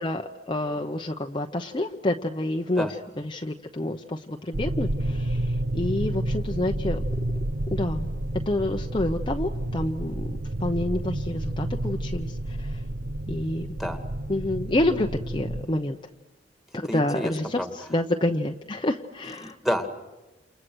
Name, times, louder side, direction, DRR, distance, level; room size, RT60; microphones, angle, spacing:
voice 1, 0.0-2.9 3.2-7.0 7.7-8.1 8.5-12.8 13.3-13.8 14.3-16.0 16.7-19.6, left 1 dB, 25° left, 3 dB, 0.9 m, -28 dB
sound 1, 4.5-15.7, right 1 dB, 65° right, 0.9 m, -30 dB
voice 2, 16.9-17.7 19.4-19.9, equal, ahead, 6 dB, 2.1 m, -29 dB
29.5 x 29.0 x 6.3 m, 1.1 s
head